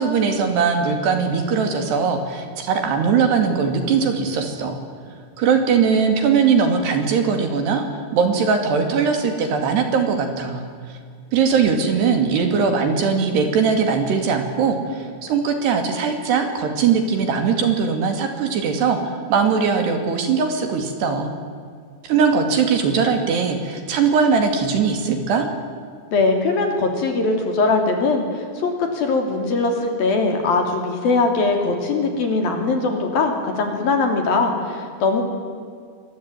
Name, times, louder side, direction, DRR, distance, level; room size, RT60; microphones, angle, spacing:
voice 1, 0.0-4.8 5.4-10.7 11.3-21.3 22.0-25.5, right 5 dB, 60° right, 6 dB, 4.2 m, -20 dB
voice 2, 26.1-28.3 28.6-35.2, left 3 dB, 50° left, 4 dB, 4.4 m, -21 dB
26.0 x 22.0 x 9.2 m, 2.2 s
omnidirectional pair, 5.8 m